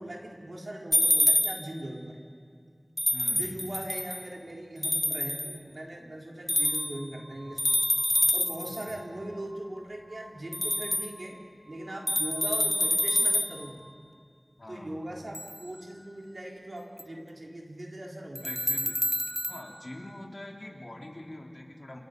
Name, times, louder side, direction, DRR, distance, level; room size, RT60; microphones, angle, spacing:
voice 1, 0.0-2.2 3.3-7.7 8.3-11.4 11.7-13.9 14.7-18.5, right 1 dB, 70° right, -1 dB, 4.0 m, -40 dB
sound 1, 0.9-1.8 3.0-4.2 4.8-5.6 6.5-7.1 7.6-8.9 10.5-11.1 12.1-13.7 15.3-15.6 17.0-17.1 18.4-19.6, equal, 10° left, 0.7 m, -27 dB
voice 2, 3.1-3.5 8.7-9.0 14.6-15.0 18.4-19.0 19.5-22.0, left 1 dB, 55° left, 0 dB, 3.4 m, -44 dB
sound 2, 6.3-14.0, right 1 dB, 90° right, 5.6 m, -53 dB
28.5 x 28.5 x 5.3 m, 2.2 s
wide cardioid pair, 40°, 0 cm